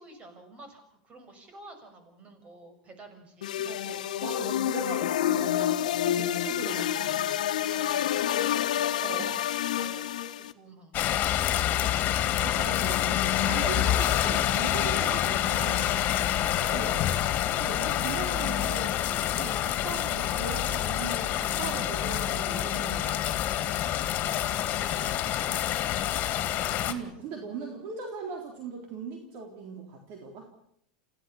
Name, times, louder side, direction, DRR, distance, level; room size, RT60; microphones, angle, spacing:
voice 1, 0.0-3.7 5.8-6.0 7.5-8.3 9.8-11.3 12.0-12.4 16.2-18.8 23.6-25.9, right 2 dB, 30° right, 7 dB, 6.6 m, -51 dB
sound 1, 3.4-10.5, left 11 dB, 80° left, 1.2 m, -28 dB
voice 2, 3.6-7.3 9.0-9.5 12.4-16.1 16.7-17.0 17.6-18.9 19.4-23.4 26.9-30.5, right 5 dB, 55° right, 2 dB, 3.8 m, -39 dB
sound 2, 10.9-26.9, left 12 dB, 45° left, 2.4 m, -27 dB
27.5 x 16.0 x 7.1 m, 0.71 s
hypercardioid pair, 110°, 4 cm